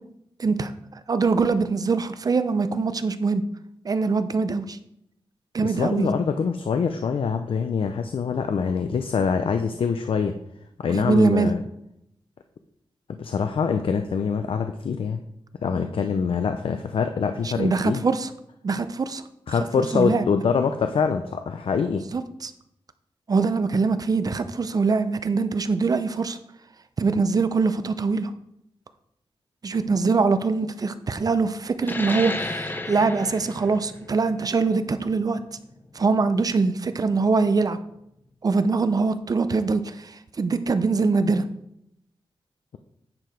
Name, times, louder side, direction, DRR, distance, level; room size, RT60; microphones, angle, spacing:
voice 1, 0.4-0.7 1.1-3.4 3.8-4.8 5.5-6.1 10.9-11.5 17.4-18.3 18.6-19.2 19.9-20.2 22.1-22.5 23.3-26.4 27.0-28.3 29.6-35.4 35.9-37.8 38.4-41.4, right 4 dB, 40° right, 11 dB, 0.5 m, -23 dB
voice 2, 5.6-10.3 10.8-11.6 13.2-15.2 15.6-18.0 19.5-22.0, left 6 dB, 70° left, 7 dB, 0.5 m, -24 dB
sound 1, 31.8-36.9, left 2 dB, 20° left, 0.6 m, -34 dB
9.6 x 4.7 x 5.1 m, 0.79 s
wide cardioid pair, 165°, 9 cm